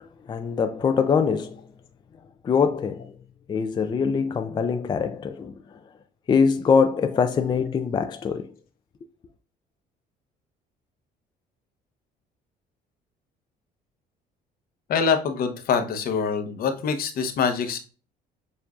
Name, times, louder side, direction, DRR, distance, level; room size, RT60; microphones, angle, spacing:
voice 1, 0.0-1.7 2.4-3.1 3.5-5.8 6.3-8.5, left 6 dB, 25° left, 0.3 m, -23 dB
voice 2, 14.9-17.8, left 6 dB, 60° left, 0.8 m, -24 dB
6.8 x 2.5 x 2.4 m
cardioid pair, 110°, 17 cm